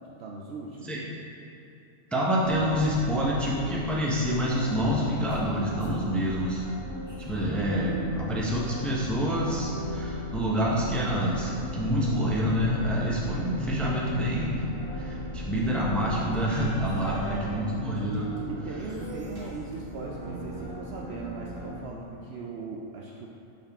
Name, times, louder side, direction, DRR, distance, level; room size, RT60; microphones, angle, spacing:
voice 1, 0.2-1.0 17.0-17.7 18.5-23.3, right 3 dB, 65° right, -2 dB, 0.7 m, -39 dB
voice 2, 2.1-6.7 7.2-14.6 14.9-18.3, equal, ahead, -5 dB, 0.6 m, -27 dB
sound 1, 2.4-21.7, equal, 35° right, 1.8 m, -37 dB
6.8 x 5.4 x 3.5 m, 2.7 s
omnidirectional pair, 1.4 m